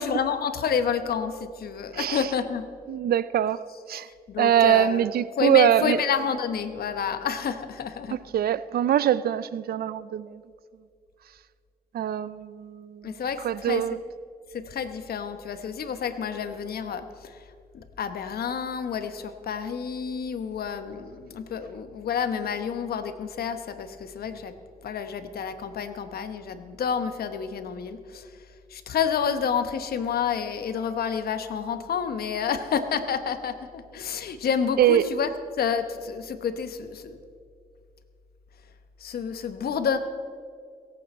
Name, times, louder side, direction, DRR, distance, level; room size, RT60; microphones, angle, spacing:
voice 1, 0.0-2.7 4.3-5.1 5.4-8.2 13.0-13.8 14.5-17.4 17.7-24.5 24.8-28.3 28.7-35.3 35.6-37.2 39.0-40.0, left 7 dB, 85° left, 1.0 m, -29 dB
voice 2, 1.9-2.3 2.9-3.6 3.9-4.1 4.4-6.0 8.3-10.4 11.9-13.2 13.4-14.0 34.8-35.1, right 11 dB, 85° right, 0.5 m, -23 dB
23.0 x 8.6 x 4.3 m
cardioid pair, 60°, 15 cm